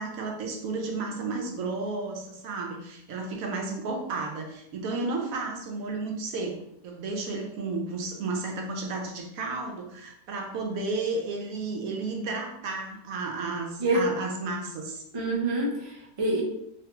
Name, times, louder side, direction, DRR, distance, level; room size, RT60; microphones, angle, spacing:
voice 1, 0.0-15.0, right 3 dB, 70° right, 2 dB, 0.9 m, -32 dB
voice 2, 15.1-16.4, right 2 dB, 50° right, -3 dB, 0.4 m, -26 dB
3.1 x 2.2 x 2.9 m, 0.77 s
omnidirectional pair, 1.6 m